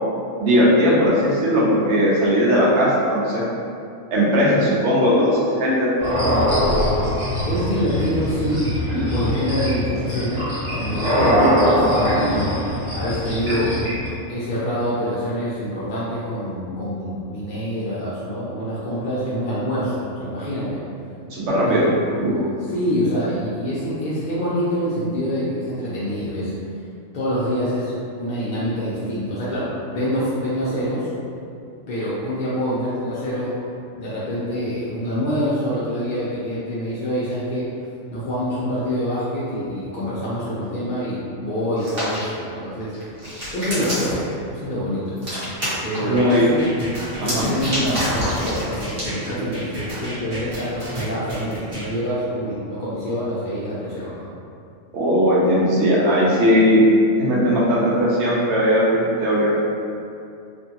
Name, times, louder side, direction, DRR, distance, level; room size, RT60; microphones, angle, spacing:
voice 1, 0.4-3.4 4.1-5.9 21.3-21.8 46.0-46.5 47.2-47.5 54.9-56.8 57.2-59.5, equal, 65° right, -6 dB, 0.8 m, -18 dB
sound 1, 6.0-14.1, equal, 20° left, 1.2 m, -21 dB
voice 2, 7.4-8.7 9.1-13.8 14.3-20.8 21.6-26.5 27.1-31.1 31.9-33.6 34.0-37.7 38.1-43.1 43.5-45.2 45.8-46.7 47.2-54.3, equal, 70° left, -9 dB, 0.5 m, -26 dB
Hands, 41.8-42.2 42.9-44.2 45.2-46.0 47.1-49.1, equal, 45° right, 1.1 m, -27 dB
sound 2, 46.2-51.9, equal, 25° right, 0.7 m, -33 dB
2.5 x 2.3 x 2.7 m, 2.5 s
omnidirectional pair, 1.4 m